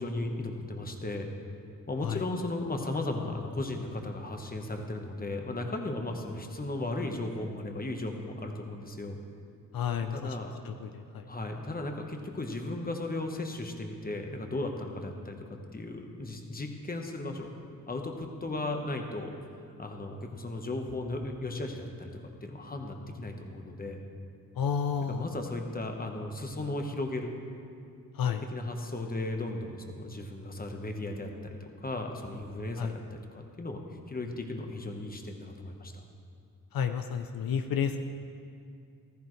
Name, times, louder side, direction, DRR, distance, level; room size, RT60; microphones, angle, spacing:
voice 1, 0.0-1.3 1.9-9.2 10.1-10.6 11.3-17.5 17.9-19.4 19.8-22.1 22.4-24.0 25.0-27.3 28.5-36.0, left 2 dB, 25° left, 3 dB, 1.2 m, -36 dB
voice 2, 9.7-10.4 10.7-11.3 24.6-25.3 28.2-28.4 32.8-32.9 36.7-38.0, left 7 dB, 75° left, 8 dB, 0.6 m, -31 dB
15.0 x 14.0 x 3.2 m, 2.4 s
wide cardioid pair, 95°, 35 cm